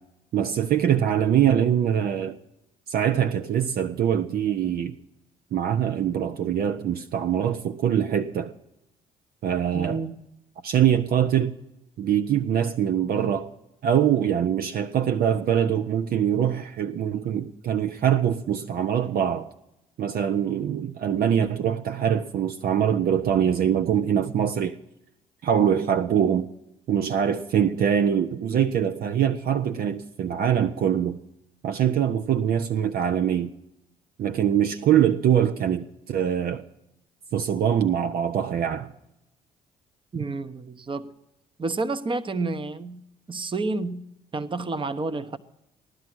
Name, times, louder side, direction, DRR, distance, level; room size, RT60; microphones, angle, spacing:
voice 1, 0.3-2.4 2.9-5.0 5.5-8.5 9.4-10.0 10.6-11.5 12.0-13.5 13.8-19.5 20.0-24.8 25.4-26.5 26.9-31.2 31.6-33.5 34.2-36.6 37.3-38.9 40.1-40.3, right 9 dB, 55° right, 0.8 m, -23 dB
voice 2, 9.7-10.2 40.1-41.1 41.6-43.0 43.3-44.1 44.3-45.4, right 3 dB, 30° right, 1.0 m, -29 dB
16.0 x 11.5 x 6.2 m
hypercardioid pair, 50°, 18 cm